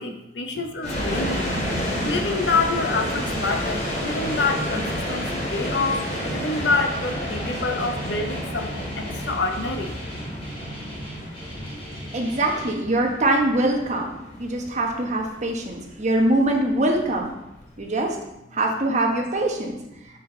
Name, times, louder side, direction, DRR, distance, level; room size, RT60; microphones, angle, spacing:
voice 1, 0.0-1.5 2.0-9.9 14.3-14.4 15.4-15.5 16.0-16.1, left 3 dB, 75° left, 5 dB, 0.8 m, -27 dB
sound 1, 0.8-17.8, equal, 55° left, 2.2 m, -30 dB
Guitar, 2.9-12.7, equal, 35° left, 1.9 m, -38 dB
voice 2, 12.1-14.1 14.4-17.3 17.8-18.2 18.5-19.7, right 1 dB, 40° right, 1 dB, 1.1 m, -23 dB
7.3 x 4.5 x 3.8 m, 0.88 s
head